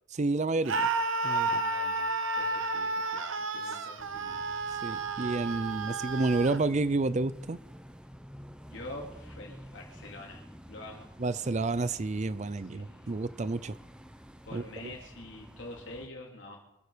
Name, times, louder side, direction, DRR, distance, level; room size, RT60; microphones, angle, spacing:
voice 1, 0.1-0.9 1.2-1.5 4.8-7.6 11.2-13.8 14.5-15.0, right 3 dB, 35° right, 16 dB, 0.5 m, -30 dB
Screaming, 0.7-6.6, right 3 dB, 70° right, 1.1 m, -31 dB
voice 2, 1.4-4.4 8.7-11.1 12.7-13.2 14.4-16.6, left 2 dB, 60° left, 0 dB, 3.4 m, -46 dB
sound 1, 4.0-16.1, equal, 5° right, 0.9 m, -49 dB
25.5 x 9.5 x 5.1 m, 0.91 s
head